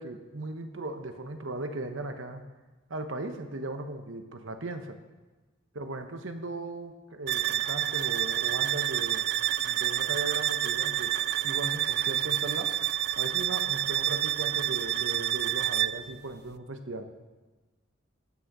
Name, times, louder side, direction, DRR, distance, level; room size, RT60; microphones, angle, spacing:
voice 1, 0.0-2.4 2.9-5.0 5.7-9.2 9.6-11.1 11.4-12.7 13.2-17.1, right 2 dB, 70° right, 7 dB, 1.1 m, -37 dB
sound 1, 7.3-16.1, right 12 dB, 55° right, 0.4 m, -28 dB
15.5 x 6.6 x 6.1 m, 1.2 s
head